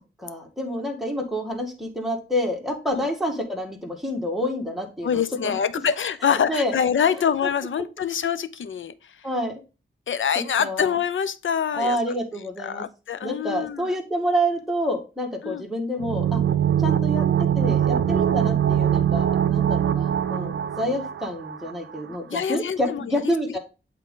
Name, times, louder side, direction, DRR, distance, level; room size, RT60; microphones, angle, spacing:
voice 1, 0.2-5.6 6.3-6.7 9.2-9.6 10.6-11.0 11.7-12.8 13.2-16.4 16.8-23.6, equal, ahead, 1.6 m, -28 dB
voice 2, 5.0-9.3 10.1-13.9 15.4-15.6 22.3-23.6, left 8 dB, 70° left, 0.6 m, -26 dB
sound 1, 16.0-21.7 22.0-22.1, right 9 dB, 70° right, 0.5 m, -22 dB
8.1 x 3.7 x 3.7 m
wide cardioid pair, 100°, 21 cm